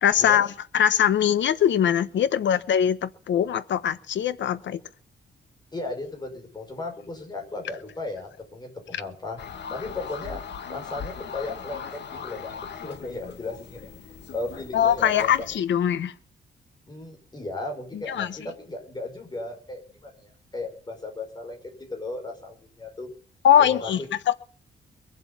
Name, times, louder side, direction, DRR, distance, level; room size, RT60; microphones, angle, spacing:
voice 1, 0.0-0.5 0.7-4.8 14.7-16.1 17.9-18.4 23.4-24.3, left 9 dB, 90° left, 1.1 m, -22 dB
voice 2, 5.7-9.4 9.7-10.4 10.7-15.3 16.9-21.6 21.9-23.1 23.6-23.9, left 2 dB, 25° left, 5.3 m, -36 dB
sound 1, 9.4-15.6, left 6 dB, 70° left, 1.9 m, -39 dB
22.0 x 7.8 x 7.2 m
wide cardioid pair, 145°, 18 cm